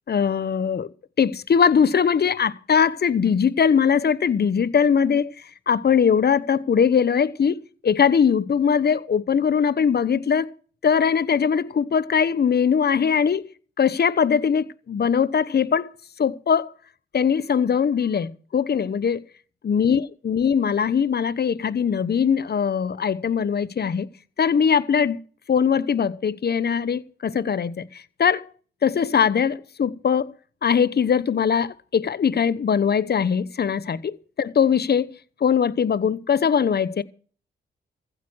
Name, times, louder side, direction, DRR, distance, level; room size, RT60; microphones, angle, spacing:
voice 1, 0.1-0.9 1.2-10.5 10.8-13.4 13.8-15.9 16.2-16.7 17.1-19.2 19.6-24.1 24.4-25.2 25.5-28.5 28.8-30.3 30.6-37.0, left 7 dB, 60° left, 1.0 m, -21 dB
15.0 x 9.1 x 6.3 m
cardioid pair, 55°, 19 cm